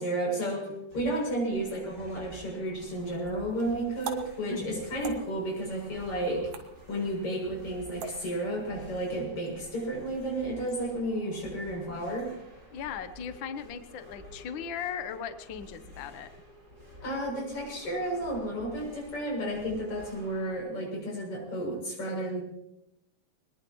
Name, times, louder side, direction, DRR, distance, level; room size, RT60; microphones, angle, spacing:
voice 1, 0.0-6.5 6.9-12.3 17.0-22.4, right 1 dB, 50° left, -1 dB, 8.1 m, -32 dB
sound 1, 0.9-20.6, left 1 dB, 35° right, 8.8 m, -51 dB
sound 2, 2.9-8.7, right 6 dB, 75° right, 2.8 m, -46 dB
voice 2, 4.5-4.8 12.7-16.3, left 7 dB, 70° left, 9 dB, 1.1 m, -38 dB
22.5 x 21.0 x 3.1 m, 0.86 s
omnidirectional pair, 3.4 m